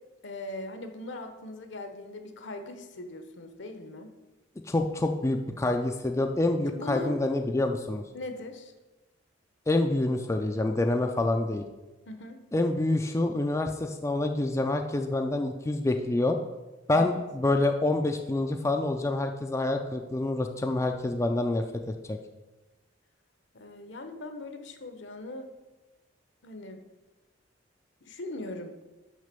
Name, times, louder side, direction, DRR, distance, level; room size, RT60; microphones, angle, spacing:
voice 1, 0.2-4.1 6.7-7.2 8.1-8.7 12.1-12.4 16.9-17.1 23.5-25.5 26.4-26.8 28.1-28.7, left 2 dB, 65° left, 7 dB, 1.0 m, -40 dB
voice 2, 4.7-8.0 9.7-11.6 12.5-16.4 16.9-21.6 22.1-22.2, left 2 dB, 15° left, 4 dB, 0.4 m, -27 dB
6.4 x 5.8 x 6.8 m, 1.1 s
head